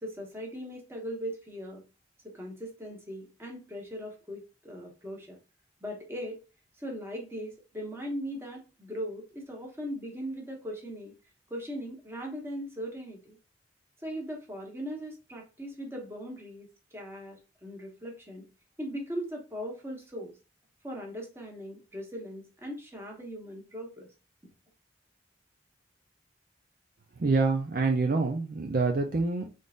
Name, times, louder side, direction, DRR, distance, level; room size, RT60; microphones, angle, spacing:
voice 1, 0.0-1.8 2.2-5.4 5.8-6.4 6.8-11.1 11.5-13.4 14.0-18.5 18.8-20.3 20.8-24.1 24.4-24.5, equal, 15° right, 0 dB, 1.1 m, -39 dB
voice 2, 27.2-29.5, right 3 dB, 50° right, 3 dB, 0.5 m, -26 dB
3.8 x 3.7 x 2.4 m, 0.31 s
head